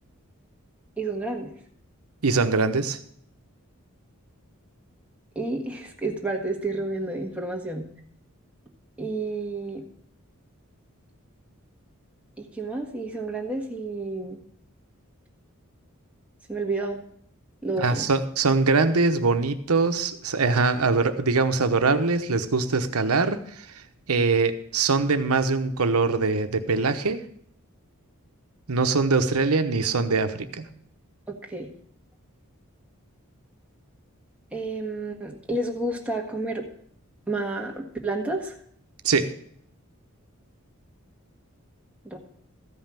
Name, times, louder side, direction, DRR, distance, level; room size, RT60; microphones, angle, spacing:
voice 1, 1.0-1.5 5.3-7.9 9.0-9.8 12.4-14.4 16.5-17.0 17.6-18.1 31.3-31.7 34.5-36.7 37.3-38.6 42.0-42.2, right 2 dB, 5° right, 0 dB, 1.6 m, -30 dB
voice 2, 2.2-3.0 17.8-23.6 24.1-27.2 28.7-30.6 39.0-39.3, right 4 dB, 85° right, 9 dB, 0.9 m, -23 dB
14.0 x 5.5 x 7.4 m, 0.65 s
head